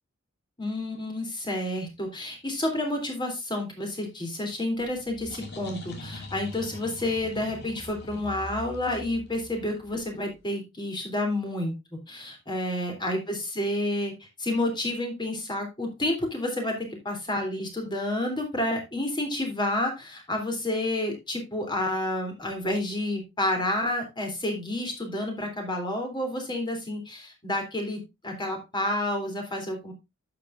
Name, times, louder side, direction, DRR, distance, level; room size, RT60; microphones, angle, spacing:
voice 1, 0.6-11.7 12.1-14.1 14.4-29.9, left 1 dB, 20° left, 3 dB, 3.2 m, -30 dB
sound 1, 4.8-10.3, left 1 dB, 50° left, 2.5 m, -43 dB
11.0 x 8.0 x 2.5 m, 0.23 s
head